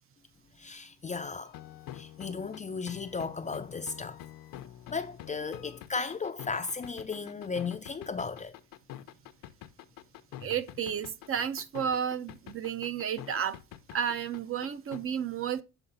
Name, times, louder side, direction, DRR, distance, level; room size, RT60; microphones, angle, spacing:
voice 1, 0.6-1.6 1.9-4.2 4.9-8.6, left 4 dB, 20° left, 0.4 m, -35 dB
sound 1, 1.4-15.0, left 12 dB, 70° left, 0.7 m, -46 dB
voice 2, 10.4-13.6 13.9-15.6, right 8 dB, 40° right, 0.5 m, -32 dB
7.0 x 3.9 x 3.8 m
cardioid pair, 120°, 35 cm